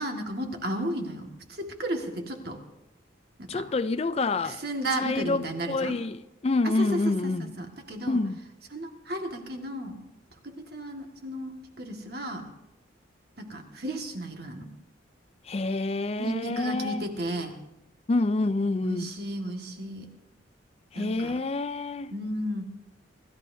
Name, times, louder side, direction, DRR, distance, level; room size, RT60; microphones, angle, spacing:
voice 1, 0.0-2.6 3.4-3.7 4.4-6.0 6.6-8.2 8.7-10.0 10.4-12.5 13.4-14.7 16.2-17.6 18.8-20.1 20.9-21.4 22.1-22.6, right 1 dB, 55° right, 1.8 m, -34 dB
voice 2, 3.5-4.6 5.0-7.5 8.1-8.4 15.5-17.1 18.1-19.1 20.9-22.1, left 3 dB, 30° left, 0.4 m, -27 dB
26.5 x 13.5 x 2.7 m
head